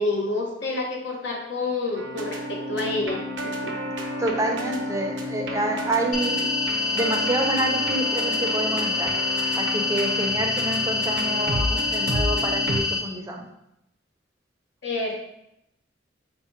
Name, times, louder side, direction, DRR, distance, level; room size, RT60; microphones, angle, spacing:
voice 1, 0.0-3.7 14.8-15.2, left 2 dB, 70° left, -1 dB, 0.7 m, -28 dB
sound 1, 1.9-12.8, equal, 85° right, 0.7 m, -31 dB
voice 2, 4.2-6.5 6.9-9.1 9.6-13.5, right 2 dB, 15° right, 1 dB, 0.5 m, -28 dB
sound 2, 6.1-13.0, left 4 dB, 50° left, 1.1 m, -26 dB
4.5 x 2.1 x 4.4 m, 0.84 s
head